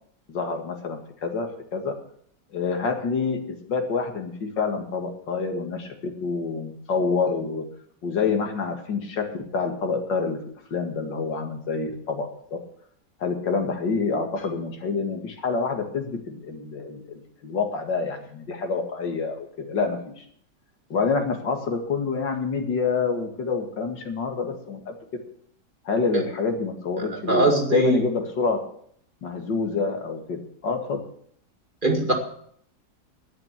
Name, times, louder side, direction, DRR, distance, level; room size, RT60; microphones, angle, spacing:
voice 1, 0.3-1.9 2.5-7.6 8.0-9.3 9.5-10.4 10.7-12.3 13.2-20.2 20.9-24.9 25.9-27.5 27.7-28.6 29.2-31.0, left 4 dB, 75° left, 4 dB, 2.7 m, -27 dB
voice 2, 27.3-28.0 31.8-32.1, right 2 dB, 25° right, 2 dB, 2.2 m, -20 dB
11.5 x 9.2 x 8.4 m, 0.63 s
omnidirectional pair, 2.0 m